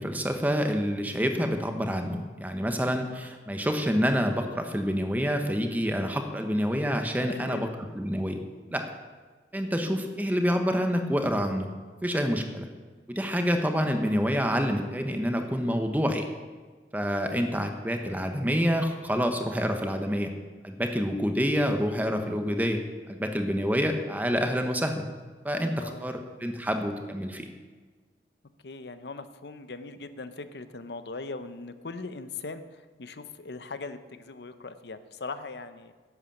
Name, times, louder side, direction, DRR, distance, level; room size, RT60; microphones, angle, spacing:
voice 1, 0.0-7.7 7.9-8.4 8.7-8.9 9.5-11.7 12.0-12.7 13.1-16.3 16.9-20.3 20.6-22.8 23.1-25.0 25.4-27.5, equal, 10° right, 5 dB, 1.0 m, -27 dB
voice 2, 7.2-7.7 25.7-26.1 28.6-35.9, left 3 dB, 70° left, 11 dB, 0.7 m, -40 dB
11.0 x 8.1 x 7.2 m, 1.5 s
head